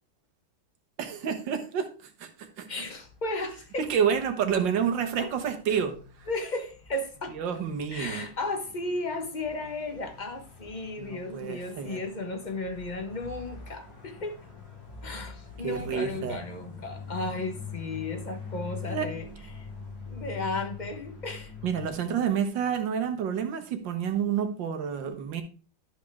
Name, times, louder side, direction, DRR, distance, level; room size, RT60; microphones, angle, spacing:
voice 1, 1.0-1.9 2.2-2.3 2.6-2.7 3.8-5.9 7.3-8.3 11.0-12.0 15.6-16.4 18.9-19.1 21.6-25.4, right 7 dB, 85° right, 1.8 m, -29 dB
voice 2, 2.7-3.9 5.2-5.3 5.7-5.8 6.3-7.4 7.9-14.4 15.0-19.3 19.5-19.7 20.1-21.5, left 2 dB, 30° left, 1.0 m, -34 dB
sound 1, 2.8-21.9, left 6 dB, 85° left, 2.7 m, -44 dB
12.0 x 5.3 x 3.5 m
omnidirectional pair, 1.9 m